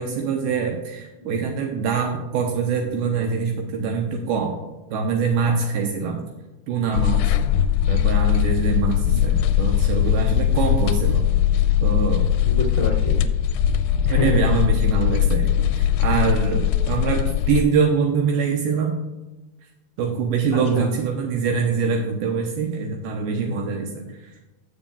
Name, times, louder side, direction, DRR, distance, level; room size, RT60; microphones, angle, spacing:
voice 1, 0.0-4.6 4.9-6.2 6.7-7.3 7.9-11.3 11.8-12.3 14.1-19.0 20.0-24.3, right 5 dB, 80° right, 1 dB, 2.7 m, -24 dB
sound 1, 6.9-17.6, left 10 dB, 80° left, 2.1 m, -20 dB
voice 2, 12.4-13.3 14.0-14.4 20.7-20.9 23.5-23.6, left 3 dB, 15° right, -4 dB, 1.8 m, -27 dB
16.0 x 7.1 x 2.4 m, 1.1 s
omnidirectional pair, 4.5 m